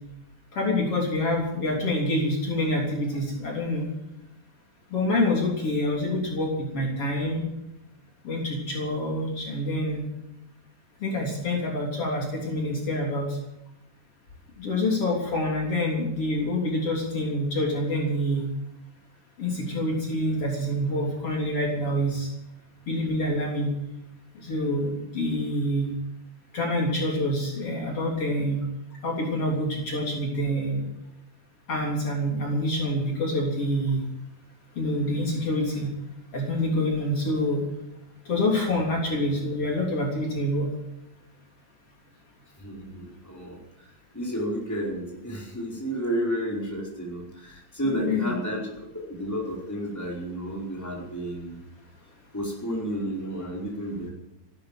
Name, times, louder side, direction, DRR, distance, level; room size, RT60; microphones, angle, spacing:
voice 1, 0.5-3.9 4.9-7.4 8.2-10.1 11.0-13.3 14.6-18.5 19.4-22.3 22.9-23.7 24.4-25.9 26.5-28.6 29.0-30.8 31.7-34.0 34.8-35.9 36.3-37.6 38.3-40.7 47.8-48.4, left 1 dB, 50° left, -2 dB, 4.3 m, -26 dB
voice 2, 42.6-43.9 44.1-51.6 52.3-54.1, equal, 5° left, -3 dB, 4.7 m, -32 dB
15.5 x 12.0 x 7.6 m, 0.87 s
omnidirectional pair, 3.4 m